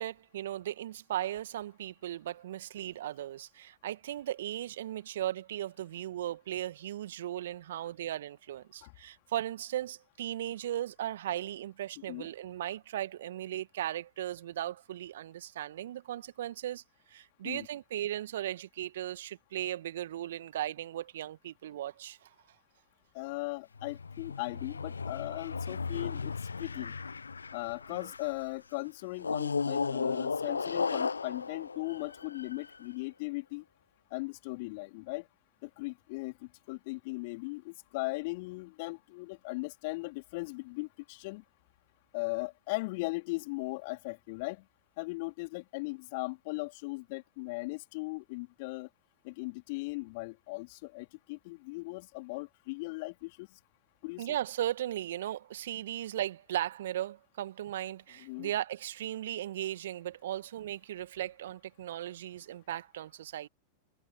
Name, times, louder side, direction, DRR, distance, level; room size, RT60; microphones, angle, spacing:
voice 1, 0.0-16.8 17.1-22.3 28.0-28.1 54.2-63.5, right 12 dB, 65° right, 2.0 m, -37 dB
voice 2, 23.1-26.9 27.5-33.6 34.1-35.3 35.6-36.3 36.7-41.4 42.1-44.6 45.0-48.9 49.2-53.5 54.0-54.3 58.2-58.5, left 25 dB, 50° left, 4.1 m, -38 dB
sound 1, 23.7-28.4 29.2-32.8, left 5 dB, 80° left, 0.7 m, -35 dB
figure-of-eight pair, 90°, 0 cm